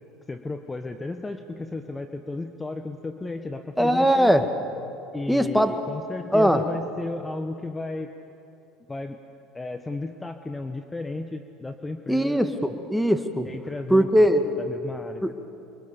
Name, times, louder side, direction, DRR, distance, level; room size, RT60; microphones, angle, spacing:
voice 1, 0.3-4.5 5.1-8.1 8.9-9.2 9.5-12.4 13.5-14.3 14.6-15.2, left 2 dB, 15° left, 7 dB, 1.2 m, -34 dB
voice 2, 3.8-4.5 5.3-5.7 6.3-6.6 12.1-13.5 13.9-14.5 15.2-15.3, equal, ahead, 8 dB, 1.8 m, -20 dB
28.5 x 23.5 x 7.1 m, 2.9 s
hypercardioid pair, 75°, 0 cm